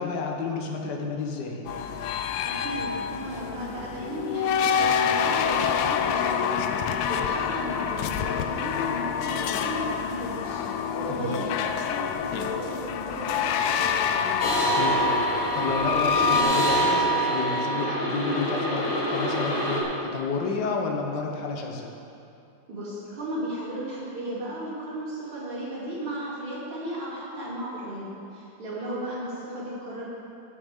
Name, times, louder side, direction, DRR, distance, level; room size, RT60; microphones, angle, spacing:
voice 1, 0.0-1.6 11.1-11.4 14.7-21.9, left 4 dB, 60° left, 2 dB, 1.4 m, -31 dB
sound 1, 1.7-16.4, left 7 dB, 90° left, 1.5 m, -27 dB
voice 2, 2.4-6.7 7.1-10.6 10.9-14.4 22.7-30.0, equal, 70° right, -9 dB, 3.7 m, -35 dB
sound 2, 14.4-19.8, right 1 dB, 40° left, 1.5 m, -25 dB
15.5 x 7.1 x 3.6 m, 2.6 s
omnidirectional pair, 2.4 m